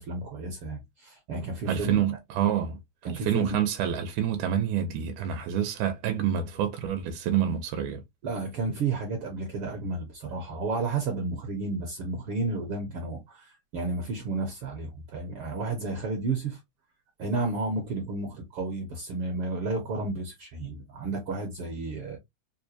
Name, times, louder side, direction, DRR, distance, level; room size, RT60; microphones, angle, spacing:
voice 1, 0.0-1.9 3.0-3.6 8.2-16.6 17.2-22.2, right 3 dB, 65° right, 1.5 m, -32 dB
voice 2, 1.7-8.0, right 9 dB, 85° right, 2.0 m, -27 dB
4.9 x 2.2 x 2.7 m
omnidirectional pair, 3.4 m